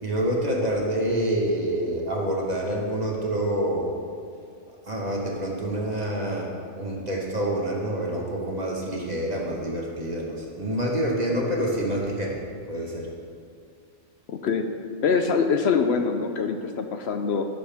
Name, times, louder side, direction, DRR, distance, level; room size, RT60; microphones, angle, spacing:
voice 1, 0.0-3.9 4.7-6.5 6.7-13.1, right 1 dB, 35° right, -2 dB, 1.5 m, -27 dB
voice 2, 14.3-14.7 15.0-17.5, left 5 dB, 65° left, 6 dB, 0.8 m, -24 dB
16.0 x 7.0 x 3.5 m, 2.3 s
omnidirectional pair, 1.2 m